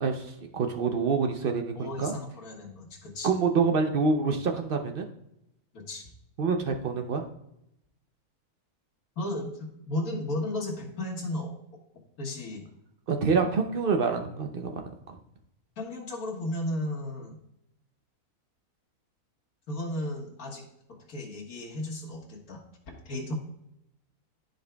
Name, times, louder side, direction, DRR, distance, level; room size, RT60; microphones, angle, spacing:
voice 1, 0.0-2.1 3.2-5.1 6.4-7.2 13.1-15.2, right 5 dB, 60° right, 4 dB, 0.5 m, -27 dB
voice 2, 1.7-3.3 5.7-6.1 9.2-11.5 12.2-12.6 15.8-17.4 19.7-20.7 21.1-23.3, left 1 dB, 65° left, -2 dB, 1.9 m, -34 dB
12.0 x 5.1 x 2.2 m, 0.80 s
omnidirectional pair, 1.6 m